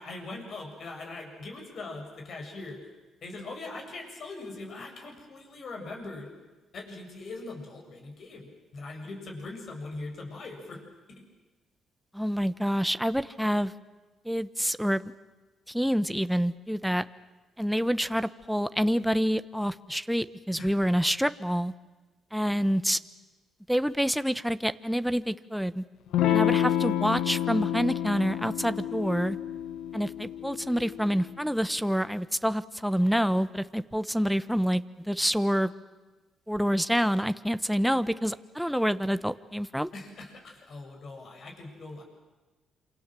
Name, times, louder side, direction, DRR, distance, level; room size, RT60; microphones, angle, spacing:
voice 1, 0.0-2.9 3.2-6.3 6.7-10.8 11.1-11.2 20.6-20.7 39.9-42.0, left 2 dB, 55° left, 3 dB, 7.4 m, -41 dB
voice 2, 12.1-13.7 14.2-15.0 15.7-17.0 17.6-21.7 22.3-23.0 23.7-25.8 26.3-29.4 29.9-35.7 36.5-39.9, equal, ahead, 12 dB, 1.0 m, -27 dB
Electric guitar / Strum, 26.1-31.2, left 11 dB, 85° left, 1.4 m, -29 dB
27.5 x 27.5 x 7.7 m, 1.2 s
cardioid pair, 90°, 0 cm